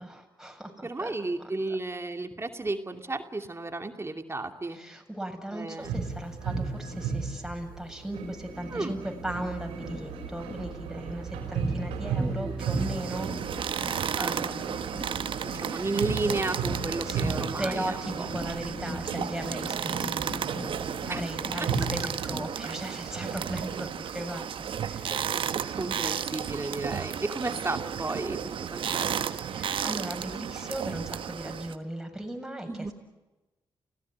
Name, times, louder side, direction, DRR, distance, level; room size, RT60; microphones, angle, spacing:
voice 1, 0.0-1.8 4.7-15.0 17.0-17.2 17.6-25.3 25.7-25.8 29.5-32.9, right 1 dB, 5° right, 3 dB, 7.2 m, -38 dB
voice 2, 0.8-4.8 5.5-5.9 8.7-9.0 12.2-12.5 14.2-14.4 15.7-18.3 21.1-21.2 25.8-29.0 32.7-32.9, right 2 dB, 30° right, 5 dB, 2.7 m, -33 dB
sound 1, 5.8-22.4, right 4 dB, 90° right, 4.5 m, -35 dB
sound 2, 12.6-31.7, right 8 dB, 65° right, 1.3 m, -33 dB
29.5 x 17.5 x 9.8 m, 1.1 s
hypercardioid pair, 40°, 9 cm